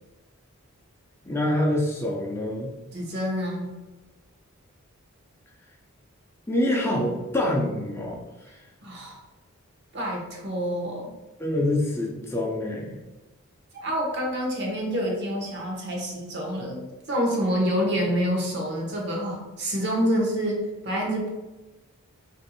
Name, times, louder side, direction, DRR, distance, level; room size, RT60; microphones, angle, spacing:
voice 1, 1.3-2.7 6.5-8.2 11.4-13.0, left 1 dB, 10° left, -2 dB, 0.6 m, -26 dB
voice 2, 2.9-3.7 8.8-9.2 9.9-11.1 13.7-21.3, equal, 50° right, -1 dB, 1.0 m, -27 dB
3.1 x 2.7 x 4.2 m, 1.1 s
head